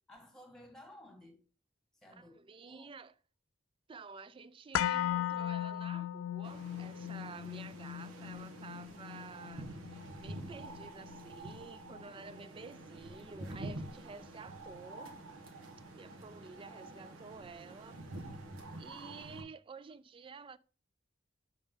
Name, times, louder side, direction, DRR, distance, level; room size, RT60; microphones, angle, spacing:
voice 1, 0.1-1.4 2.0-2.9, left 1 dB, ahead, 1.6 m, -55 dB
voice 2, 2.1-3.1 3.9-15.2 15.9-18.0 18.8-20.6, right 4 dB, 25° right, 0.3 m, -51 dB
sound 1, 4.7-12.8 13.1-13.2, left 12 dB, 75° left, 0.3 m, -38 dB
sound 2, 6.4-19.4, right 2 dB, 85° right, 1.3 m, -48 dB
6.2 x 5.4 x 3.6 m
head